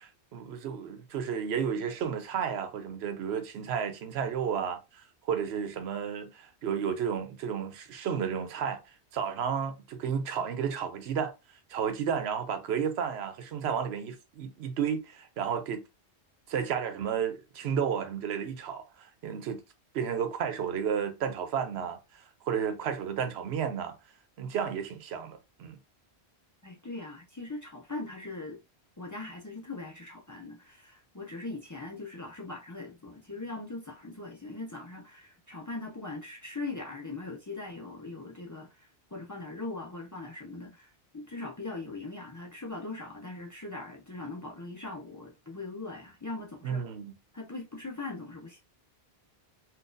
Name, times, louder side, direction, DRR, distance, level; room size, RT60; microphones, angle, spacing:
voice 1, 0.0-8.8 9.1-11.3 11.7-15.8 16.5-19.6 19.9-24.0 24.4-25.8 46.6-47.2, right 7 dB, 80° right, 0.9 m, -32 dB
voice 2, 26.6-28.6 29.0-46.9 47.3-48.6, left 3 dB, 30° left, 0.3 m, -40 dB
3.9 x 2.4 x 2.5 m
omnidirectional pair, 1.1 m